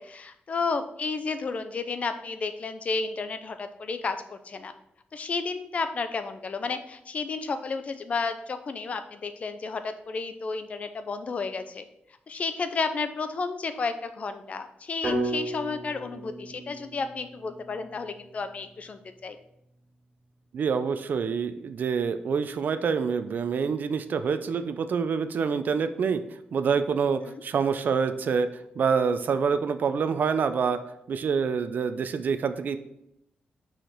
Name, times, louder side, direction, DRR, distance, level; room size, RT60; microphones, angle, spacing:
voice 1, 0.0-4.7 5.1-11.8 12.3-19.4 27.2-27.4, left 4 dB, 40° left, 9 dB, 0.5 m, -32 dB
sound 1, 15.0-19.1, right 1 dB, 40° right, 2.5 m, -35 dB
voice 2, 20.5-26.2 26.5-28.5 28.8-30.8 31.1-32.8, right 6 dB, 60° right, 10 dB, 0.5 m, -26 dB
6.3 x 5.0 x 4.5 m, 0.79 s
wide cardioid pair, 165°, 3 cm